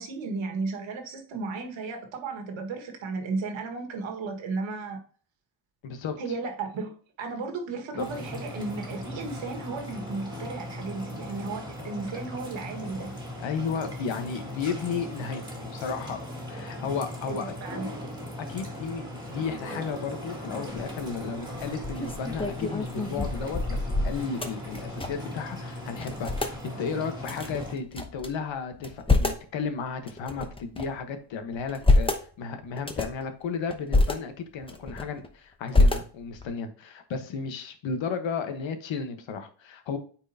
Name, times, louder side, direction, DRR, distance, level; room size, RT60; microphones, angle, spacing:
voice 1, 0.0-5.0 6.2-13.1 17.3-18.2, right 3 dB, 80° right, 1.8 m, -34 dB
voice 2, 5.8-6.2 8.0-8.1 8.3-8.4 12.1-12.2 13.4-17.5 18.5-40.0, left 5 dB, 75° left, 1.3 m, -34 dB
sound 1, 8.0-27.7, left 1 dB, 10° right, 2.2 m, -38 dB
sound 2, 21.8-25.3 25.6-25.7 26.0-26.6 27.2-28.3 28.7-29.5 30.1-31.0 31.5-32.2 32.8-33.2 33.7-34.1 34.6-35.3 35.7-36.5, left 2 dB, 10° left, 0.8 m, -26 dB
8.6 x 4.6 x 2.8 m
cardioid pair, 120°, 46 cm